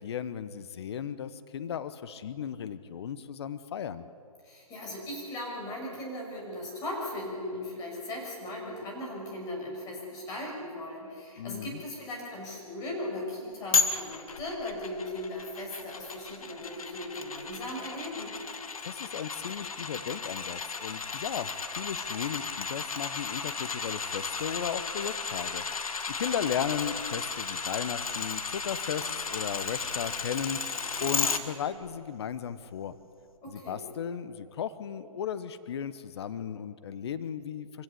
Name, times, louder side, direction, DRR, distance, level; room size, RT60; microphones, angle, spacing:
voice 1, 0.0-4.1 11.4-11.8 18.8-33.0 33.5-37.8, left 8 dB, 45° left, 13 dB, 1.1 m, -36 dB
voice 2, 4.4-18.3 33.4-33.8, left 1 dB, 20° left, -1 dB, 6.3 m, -38 dB
sound 1, 13.7-31.4 31.8-31.9, left 5 dB, 70° left, 1.9 m, -34 dB
25.0 x 16.5 x 8.4 m, 2.4 s
figure-of-eight pair, 140°, 19 cm